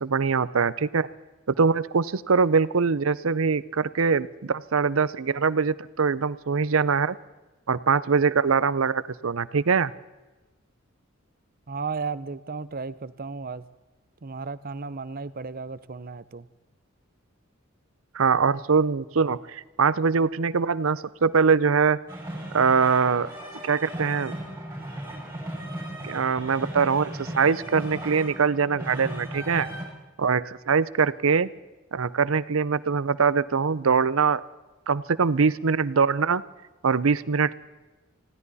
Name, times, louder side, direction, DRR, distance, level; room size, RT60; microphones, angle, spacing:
voice 1, 0.0-1.1 1.5-7.2 7.7-9.9 18.1-22.0 22.5-23.3 23.6-24.3 26.0-29.7 30.2-31.5 31.9-34.4 34.9-36.4 36.8-37.6, right 5 dB, 80° right, 18 dB, 0.6 m, -23 dB
voice 2, 11.7-13.6 14.2-16.5, right 4 dB, 45° right, 16 dB, 0.7 m, -34 dB
sound 1, 22.1-29.8, right 1 dB, 15° right, 6.1 m, -36 dB
20.5 x 16.0 x 4.2 m, 1.1 s
head